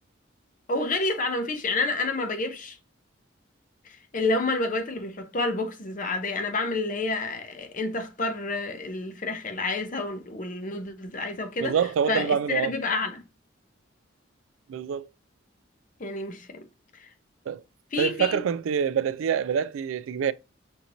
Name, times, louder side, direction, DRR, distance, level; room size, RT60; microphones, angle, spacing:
voice 1, 0.7-2.8 3.8-11.8 12.1-13.2 16.0-16.7 16.9-17.1 17.9-18.4, left 3 dB, 40° left, 0.7 m, -29 dB
voice 2, 11.6-12.7 14.7-15.1 17.5-17.6 18.0-20.3, right 7 dB, 85° right, 0.3 m, -26 dB
6.2 x 2.9 x 2.7 m
head